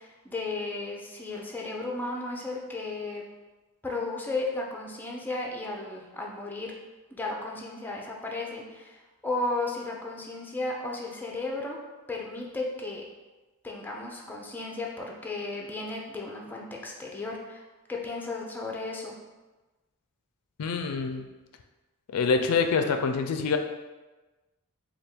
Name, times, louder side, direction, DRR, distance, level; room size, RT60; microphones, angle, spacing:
voice 1, 0.0-3.2 3.8-6.7 7.1-11.8 12.1-13.0 13.6-17.6 17.9-19.2, left 2 dB, 10° left, -1 dB, 0.4 m, -34 dB
voice 2, 20.6-21.2 22.1-23.6, left 5 dB, 85° left, 6 dB, 0.4 m, -25 dB
3.4 x 2.3 x 4.3 m, 1.2 s
head